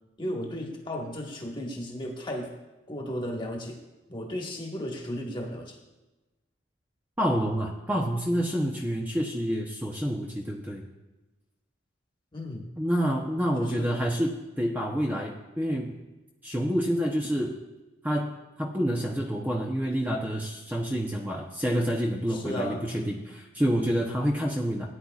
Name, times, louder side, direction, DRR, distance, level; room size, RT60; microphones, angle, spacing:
voice 1, 0.2-2.5 2.9-3.8 4.1-5.8 12.3-12.7 13.6-14.0 22.3-22.8, left 1 dB, 25° left, 1 dB, 1.5 m, -34 dB
voice 2, 7.2-10.8 12.8-15.9 16.4-17.6 18.0-18.3 18.6-24.9, equal, 10° right, 0 dB, 0.8 m, -28 dB
17.5 x 9.9 x 2.4 m, 1.1 s
head